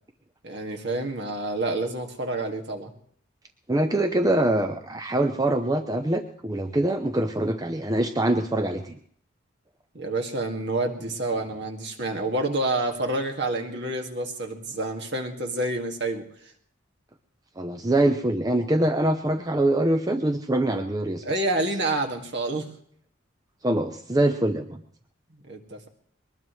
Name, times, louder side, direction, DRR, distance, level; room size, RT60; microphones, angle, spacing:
voice 1, 0.4-2.9 9.9-16.3 21.2-22.7 25.4-25.9, right 2 dB, 55° right, 2 dB, 2.1 m, -28 dB
voice 2, 3.7-9.0 17.6-21.2 23.6-24.8, right 1 dB, 15° right, 6 dB, 0.6 m, -24 dB
22.0 x 20.0 x 3.2 m, 0.63 s
head